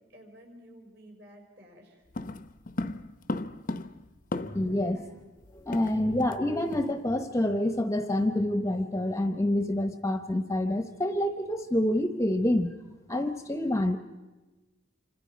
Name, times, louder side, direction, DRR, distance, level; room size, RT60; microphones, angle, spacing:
voice 1, 0.0-2.0 4.9-5.2 5.8-6.1, equal, 50° right, 2 dB, 5.2 m, -53 dB
sound 1, 2.1-4.8 5.1-5.2 5.4-6.4 6.7-6.9 7.3-7.5, left 2 dB, 40° left, 0.7 m, -36 dB
voice 2, 4.5-5.0 5.5-12.7 13.1-14.0, left 1 dB, 15° left, 8 dB, 0.9 m, -27 dB
27.5 x 25.5 x 5.2 m, 1.2 s
head